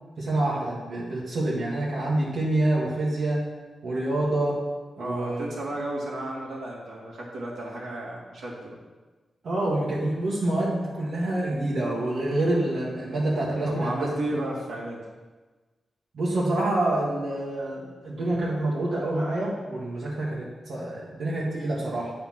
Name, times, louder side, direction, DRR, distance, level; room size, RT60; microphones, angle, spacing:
voice 1, 0.2-3.4 3.8-4.7 5.0-5.5 9.4-14.1 16.1-22.1, right 1 dB, 70° right, -6 dB, 1.8 m, -27 dB
voice 2, 5.0-8.8 13.7-15.0, right 1 dB, 90° right, -5 dB, 2.4 m, -33 dB
9.0 x 4.3 x 5.8 m, 1.3 s
wide cardioid pair, 105°, 0 cm